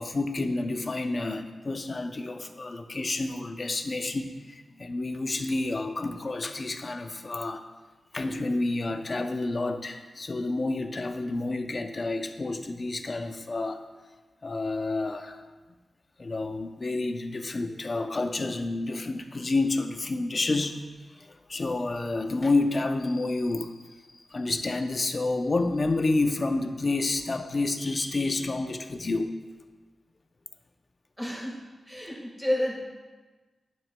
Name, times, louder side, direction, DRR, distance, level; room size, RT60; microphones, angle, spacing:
voice 1, 0.0-7.6 8.1-13.8 14.4-15.4 16.2-20.8 21.1-29.3, left 2 dB, 35° left, 7 dB, 0.5 m, -29 dB
voice 2, 31.2-32.8, left 1 dB, ahead, -3 dB, 1.7 m, -31 dB
10.5 x 9.1 x 2.2 m, 1.3 s
wide cardioid pair, 140°, 0 cm